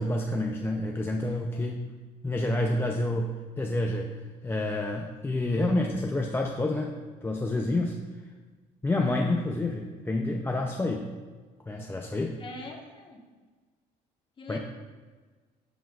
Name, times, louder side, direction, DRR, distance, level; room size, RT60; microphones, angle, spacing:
voice 1, 0.0-1.8 2.2-4.1 4.4-6.9 7.2-8.0 8.8-11.1 11.7-12.4 14.5-14.6, left 2 dB, 15° left, 1 dB, 0.5 m, -28 dB
voice 2, 1.2-1.7 12.4-13.2 14.4-14.6, left 2 dB, 30° left, 0 dB, 1.3 m, -43 dB
9.2 x 7.2 x 2.4 m, 1.4 s
cardioid pair, 110°, 17 cm